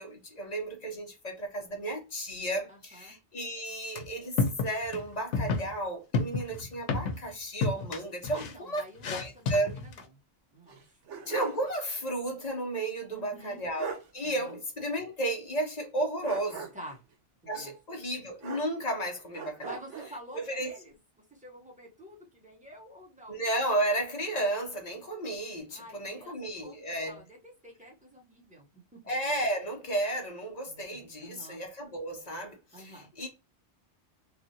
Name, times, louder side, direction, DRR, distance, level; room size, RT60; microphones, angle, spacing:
voice 1, 0.0-9.7 11.3-16.7 17.5-19.8 20.5-20.8 23.3-27.2 29.1-33.3, right 1 dB, 40° left, 0.8 m, -33 dB
voice 2, 2.7-3.2 8.3-10.2 10.5-11.0 13.1-13.6 14.2-14.6 16.7-17.0 17.4-17.7 19.6-21.0 21.3-23.4 25.7-29.0 30.7-31.6 32.7-33.1, right 1 dB, 5° right, 1.2 m, -49 dB
sound 1, 4.0-4.1 4.4-5.0 5.3-5.7 6.1-7.3 7.6-10.0, left 4 dB, 80° left, 1.0 m, -30 dB
sound 2, 10.7-11.7 12.0-12.1 13.4-13.5 13.8-14.1 16.2-17.0 18.4-19.0 19.3-20.2, right 5 dB, 85° right, 1.1 m, -41 dB
3.2 x 2.3 x 2.7 m
omnidirectional pair, 1.2 m